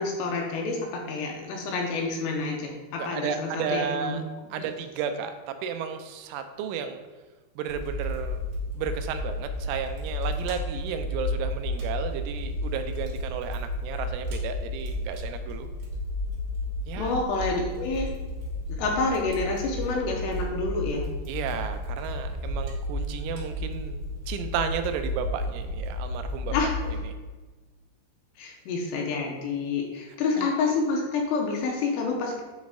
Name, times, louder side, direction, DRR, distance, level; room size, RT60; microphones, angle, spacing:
voice 1, 0.0-4.2 17.0-18.1 18.7-21.1 26.5-26.8 28.4-32.4, left 3 dB, 80° left, 0 dB, 2.6 m, -28 dB
voice 2, 3.0-4.2 4.5-7.0 7.6-8.4 8.8-15.7 16.9-17.2 21.3-26.5 27.0-27.2 30.4-30.5, right 7 dB, 90° right, 8 dB, 3.1 m, -33 dB
Fire, 7.7-27.0, left 1 dB, 65° right, 3.1 m, -32 dB
8.7 x 4.0 x 3.6 m, 1.3 s
omnidirectional pair, 5.4 m